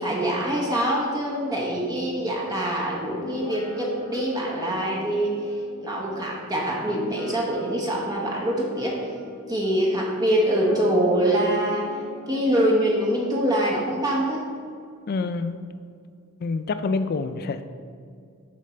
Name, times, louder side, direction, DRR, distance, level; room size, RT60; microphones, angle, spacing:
voice 1, 0.0-5.5 5.8-9.1 9.5-11.8 12.3-14.4, right 1 dB, 20° right, -3 dB, 1.0 m, -24 dB
Guitar, 2.9-10.1 10.6-14.3, equal, 90° left, 1.5 m, -38 dB
voice 2, 15.1-15.6 16.4-17.6, left 4 dB, 45° left, 10 dB, 0.3 m, -27 dB
6.4 x 5.3 x 4.4 m, 2.2 s
head